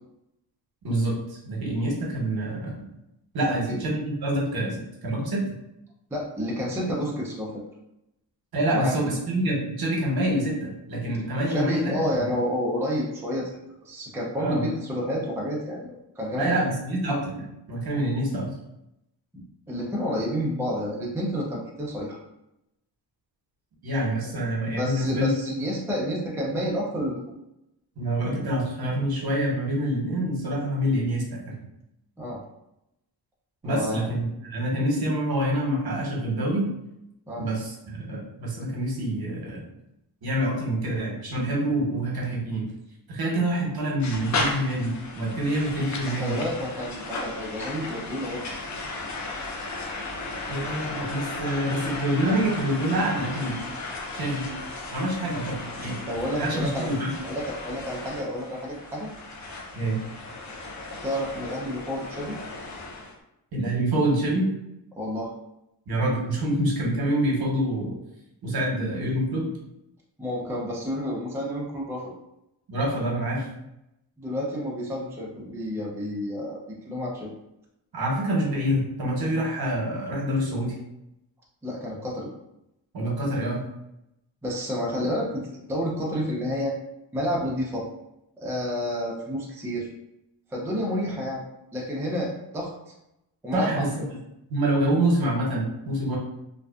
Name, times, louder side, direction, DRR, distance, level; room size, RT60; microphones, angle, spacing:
voice 1, 0.8-2.8 3.3-5.4 8.5-11.9 14.4-14.7 16.4-18.5 23.8-25.3 28.0-31.5 33.6-36.7 37.4-39.6 40.2-42.6 43.1-46.4 50.5-53.6 54.1-54.5 54.9-55.9 56.4-57.1 59.7-60.0 63.5-64.5 65.9-67.9 68.4-69.5 72.7-73.5 77.9-80.7 82.9-83.6 93.5-93.9 94.5-96.2, right 1 dB, 55° right, -2 dB, 1.0 m, -26 dB
voice 2, 3.5-3.8 6.1-7.6 8.7-8.9 11.5-13.5 13.8-15.9 16.2-16.6 19.3-22.2 24.8-27.2 32.2-32.4 33.6-34.1 37.3-37.5 46.1-48.4 56.1-56.9 57.2-59.1 61.0-62.4 64.9-65.3 70.2-72.1 74.2-76.6 76.8-77.3 81.6-82.3 84.4-86.8 87.1-87.9 88.4-89.9 90.5-91.4 91.7-92.7 93.4-93.8, equal, 5° right, -3 dB, 0.5 m, -30 dB
sound 1, 44.0-63.1, left 3 dB, 40° left, 0.6 m, -35 dB
2.5 x 2.3 x 2.3 m, 0.85 s
cardioid pair, 75°, 45 cm